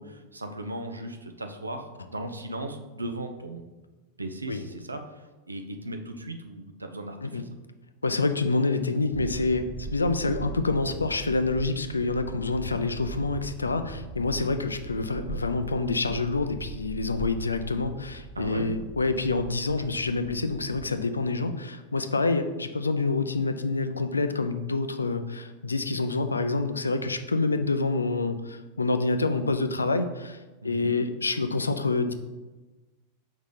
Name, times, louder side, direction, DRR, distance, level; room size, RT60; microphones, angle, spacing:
voice 1, 0.0-3.6 4.2-7.5 18.4-18.7 30.6-30.9, right 1 dB, 80° right, 6 dB, 0.6 m, -37 dB
voice 2, 8.0-30.4 30.6-32.1, left 3 dB, 80° left, 9 dB, 0.4 m, -27 dB
sound 1, 9.1-20.9, right 2 dB, 5° right, 0.5 m, -40 dB
5.3 x 3.9 x 5.0 m, 1.2 s
figure-of-eight pair, 90°, 0 cm